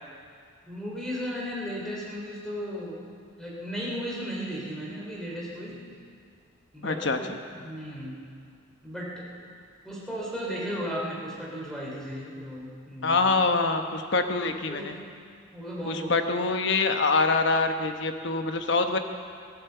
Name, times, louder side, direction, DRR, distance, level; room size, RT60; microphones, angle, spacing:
voice 1, 0.7-3.0 3.4-5.9 6.7-8.2 8.8-9.5 9.8-13.2 14.7-15.0 15.5-16.1, equal, ahead, -4 dB, 3.2 m, -35 dB
voice 2, 6.8-7.2 13.0-14.9 15.8-19.0, left 3 dB, 55° left, 6 dB, 1.0 m, -25 dB
18.5 x 8.7 x 7.9 m, 2.2 s
head